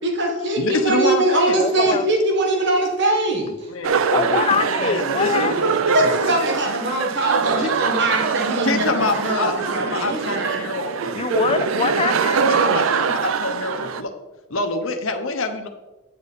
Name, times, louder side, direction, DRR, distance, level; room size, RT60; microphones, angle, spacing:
voice 1, 0.0-3.7 5.9-10.7, right 1 dB, 60° right, 1 dB, 1.6 m, -22 dB
voice 2, 0.6-1.5 3.7-4.4 4.8-5.9 7.6-7.7 8.6-9.5 9.8-11.3 12.4-14.1 14.5-15.7, left 3 dB, 70° left, 5 dB, 0.9 m, -26 dB
voice 3, 1.6-2.0 4.1-5.8 11.2-12.4, left 5 dB, 25° left, 13 dB, 0.3 m, -23 dB
sound 1, 3.8-14.0, right 5 dB, 75° right, 0.5 m, -23 dB
9.3 x 6.8 x 4.2 m, 1.1 s
head